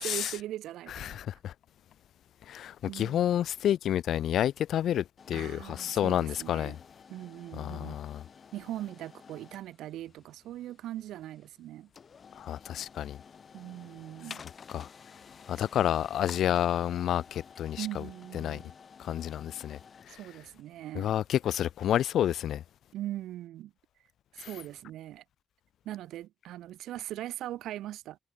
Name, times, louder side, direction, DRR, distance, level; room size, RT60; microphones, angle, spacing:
voice 1, 0.0-1.2 2.9-3.4 5.3-6.8 7.1-8.0 8.5-11.9 13.5-14.4 15.6-15.7 17.8-18.7 20.1-21.1 22.9-23.7 24.3-25.2 25.8-28.2, right 13 dB, 85° right, 1.4 m, -40 dB
voice 2, 1.0-1.5 2.5-6.8 7.6-8.2 12.4-13.2 14.7-14.9 15.5-18.0 18.3-18.6 19.0-19.8 20.1-20.2 21.0-22.6 24.4-24.5, left 11 dB, 70° left, 0.4 m, -29 dB
sound 1, 5.2-22.0, left 6 dB, 45° left, 0.9 m, -53 dB
cardioid pair, 90°, 0 cm